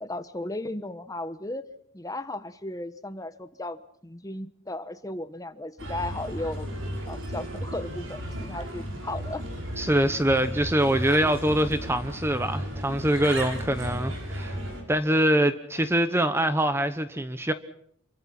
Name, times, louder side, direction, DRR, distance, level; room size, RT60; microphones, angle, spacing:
voice 1, 0.0-1.6 1.9-6.7 7.1-9.5, left 1 dB, 15° left, 1.2 m, -35 dB
Bird, 5.8-14.8, equal, 75° right, 6.5 m, -34 dB
voice 2, 9.8-14.6 14.9-17.5, right 1 dB, 10° right, 0.9 m, -24 dB
27.5 x 24.0 x 6.0 m
head